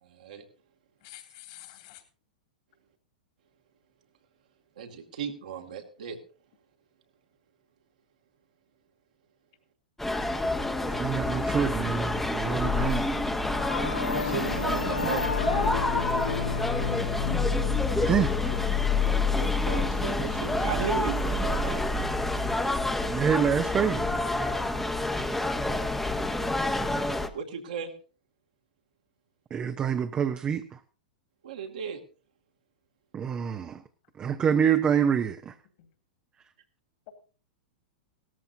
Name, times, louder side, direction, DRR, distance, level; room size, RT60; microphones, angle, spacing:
voice 1, 0.0-0.4 4.8-6.2 12.7-13.1 14.1-15.3 19.2-21.8 27.3-27.9 31.4-32.0, right 7 dB, 70° right, 2.3 m, -36 dB
voice 2, 1.0-2.0 35.8-35.9, left 15 dB, 55° left, 2.9 m, -48 dB
sound 1, 10.0-27.3, left 2 dB, 5° left, 1.1 m, -28 dB
voice 3, 10.9-13.1 17.9-18.3 23.1-24.1 29.5-30.6 33.1-33.8 34.2-35.5, right 7 dB, 25° right, 0.8 m, -26 dB
Singing / Musical instrument, 13.5-23.0, left 6 dB, 85° left, 0.5 m, -34 dB
17.5 x 13.5 x 2.7 m
hypercardioid pair, 105°, 4 cm